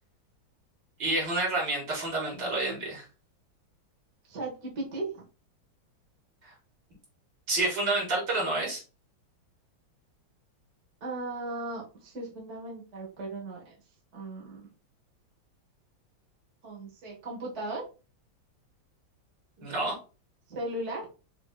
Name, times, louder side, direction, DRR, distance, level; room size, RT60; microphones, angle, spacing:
voice 1, 1.0-3.0 7.5-8.8 19.6-20.0, right 2 dB, 65° right, -3 dB, 2.5 m, -29 dB
voice 2, 4.3-5.2 11.0-13.7 14.1-14.7 16.6-17.8 20.5-21.1, right 2 dB, 40° right, -3 dB, 1.5 m, -37 dB
6.2 x 2.9 x 2.3 m, 0.33 s
omnidirectional pair, 2.1 m